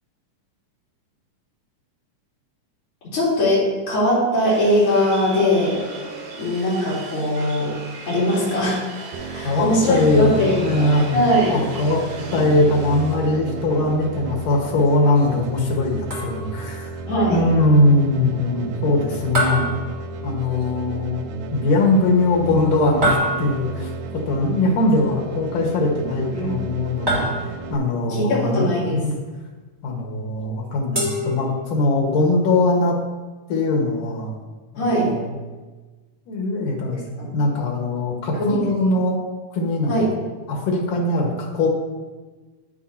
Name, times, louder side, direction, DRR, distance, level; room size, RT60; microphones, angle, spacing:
voice 1, 3.1-5.8 6.4-7.7 8.1-10.8 11.1-11.6 17.1-17.4 26.3-26.6 28.1-29.0 34.8-35.1 37.2-37.3 38.4-38.7 39.9-40.1, equal, 40° left, -9 dB, 4.0 m, -21 dB
sound 1, 4.5-13.2, right 3 dB, 65° right, 2.6 m, -38 dB
sound 2, 9.1-27.8, right 5 dB, 85° right, 2.2 m, -33 dB
voice 2, 9.4-11.1 11.5-12.0 12.3-16.9 17.3-19.7 20.2-21.2 21.5-23.9 24.3-27.3 27.7-29.1 29.8-33.0 33.5-34.3 34.7-35.3 36.3-37.0 37.3-39.2 39.5-40.0 40.5-41.7, left 2 dB, 80° left, -1 dB, 3.0 m, -21 dB
sound 3, 16.1-16.7 19.3-20.6 23.0-23.9 27.1-27.9 30.9-32.0, right 1 dB, 20° right, 1.6 m, -25 dB
9.4 x 9.2 x 2.8 m, 1.3 s
omnidirectional pair, 3.7 m